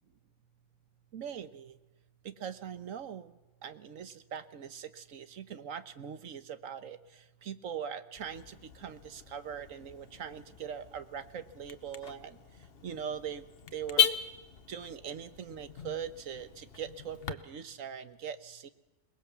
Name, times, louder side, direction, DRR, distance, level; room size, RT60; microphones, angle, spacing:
voice 1, 1.1-1.7 2.2-3.3 3.6-7.0 7.4-12.4 12.8-13.4 13.7-14.1 14.7-18.7, right 8 dB, 75° right, 12 dB, 1.4 m, -41 dB
Car / Alarm, 8.2-17.3, left 9 dB, 50° left, 1.1 m, -37 dB
22.0 x 20.5 x 7.1 m, 1.1 s
omnidirectional pair, 1.4 m